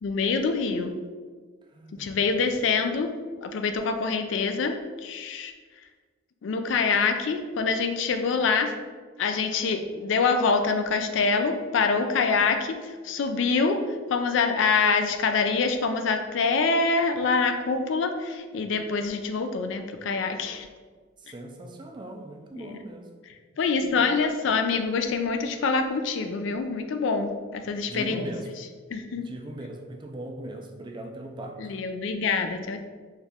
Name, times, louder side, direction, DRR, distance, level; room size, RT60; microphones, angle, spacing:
voice 1, 0.0-1.0 1.9-3.1 3.4-4.8 5.0-5.5 6.4-8.7 9.2-13.8 14.1-20.7 22.5-22.8 23.6-28.2 28.9-29.3 31.6-32.8, left 4 dB, 65° left, 7 dB, 0.4 m, -25 dB
voice 2, 1.7-2.3 21.2-23.1 23.8-24.1 27.9-28.5 29.1-31.8, right 1 dB, 25° right, 3 dB, 0.3 m, -39 dB
4.4 x 2.4 x 3.4 m, 1.5 s
head